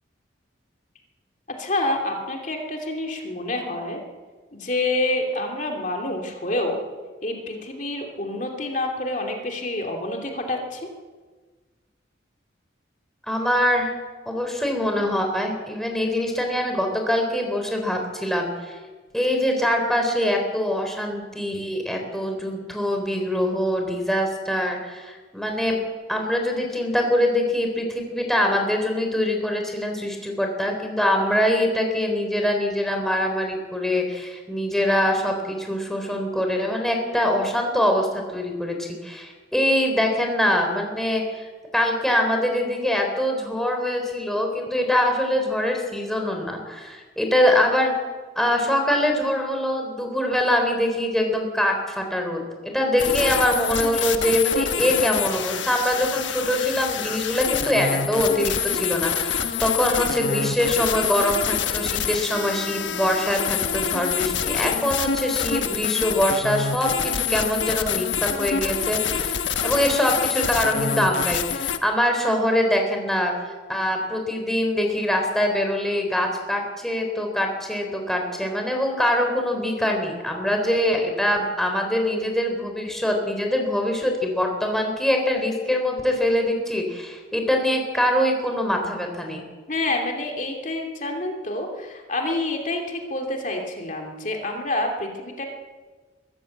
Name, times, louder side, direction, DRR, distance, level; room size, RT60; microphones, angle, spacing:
voice 1, 1.6-4.0 4.5-6.8 7.2-10.9 89.7-95.5, left 2 dB, 40° left, 2 dB, 2.8 m, -27 dB
voice 2, 13.3-13.9 14.3-18.8 19.1-25.8 26.1-41.5 41.7-48.0 48.4-73.3 73.7-89.4, left 1 dB, ahead, 2 dB, 3.7 m, -23 dB
sound 1, 53.0-71.8, left 7 dB, 75° left, 1.2 m, -26 dB
23.0 x 14.0 x 8.0 m, 1.4 s
head